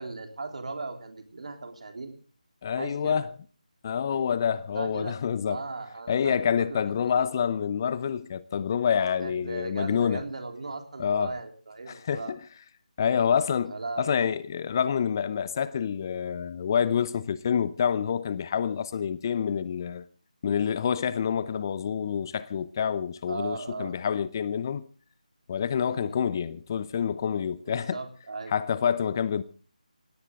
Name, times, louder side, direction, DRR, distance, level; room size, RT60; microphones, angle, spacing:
voice 1, 0.0-2.2 2.8-3.2 4.7-5.2 5.5-7.2 9.2-12.3 13.7-14.1 23.3-24.0 25.9-26.2 27.7-28.7, right 3 dB, 55° right, 3.5 m, -37 dB
voice 2, 2.6-3.3 3.8-5.6 6.1-10.2 11.0-11.3 11.9-12.4 13.0-20.1 20.4-24.8 25.5-28.0 28.5-29.4, left 7 dB, 30° left, 0.6 m, -27 dB
17.5 x 17.5 x 3.7 m
figure-of-eight pair, 160°, 4 cm